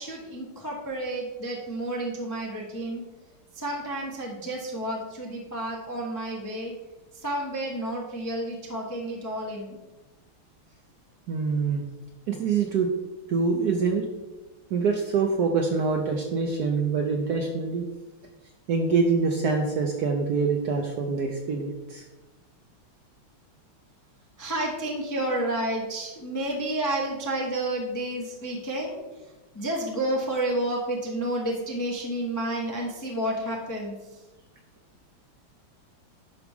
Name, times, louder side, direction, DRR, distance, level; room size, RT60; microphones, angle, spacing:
voice 1, 0.0-3.0 3.5-6.7 7.1-9.8 24.4-29.0 29.5-34.2, right 1 dB, 20° left, -2 dB, 0.4 m, -30 dB
voice 2, 11.3-11.8 12.3-12.9 13.3-14.1 14.7-17.8 18.7-22.0, right 4 dB, 65° right, 2 dB, 1.0 m, -25 dB
11.0 x 4.6 x 3.6 m, 1.1 s
omnidirectional pair, 2.3 m